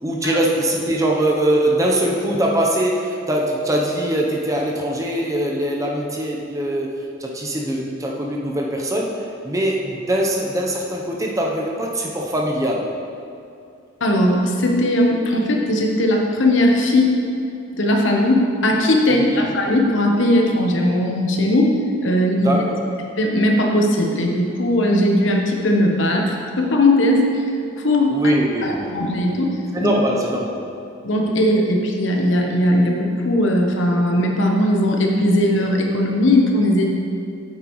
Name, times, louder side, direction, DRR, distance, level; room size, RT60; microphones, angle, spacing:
voice 1, 0.0-12.9 19.1-19.5 22.4-22.8 28.1-28.9 29.7-30.6, right 1 dB, 15° right, -1 dB, 0.7 m, -22 dB
voice 2, 14.0-17.2 17.8-21.7 22.0-22.6 23.2-27.3 27.8-28.3 28.6-29.9 31.0-36.9, left 1 dB, 65° left, 1 dB, 0.9 m, -18 dB
8.7 x 7.8 x 3.1 m, 2.5 s
head